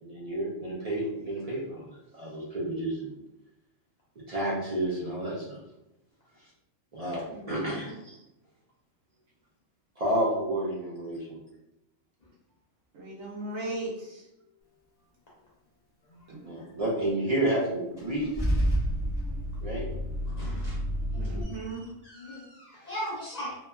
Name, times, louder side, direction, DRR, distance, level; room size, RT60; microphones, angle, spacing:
voice 1, 0.0-1.9 2.1-3.1 4.2-5.6 6.9-7.2 7.5-8.2 10.0-11.4 16.4-18.4 19.6-19.9, right 1 dB, 65° right, -5 dB, 0.3 m, -30 dB
voice 2, 7.3-7.9 12.9-14.2 16.3-16.5 19.3-19.4 21.2-21.9, right 2 dB, 90° right, -5 dB, 1.1 m, -38 dB
Car / Engine starting / Idling, 18.0-21.4, equal, 5° right, 1.0 m, -29 dB
voice 3, 20.3-20.8 21.1-23.6, equal, 70° left, -6 dB, 0.4 m, -39 dB
2.9 x 2.2 x 2.2 m, 0.87 s
omnidirectional pair, 1.4 m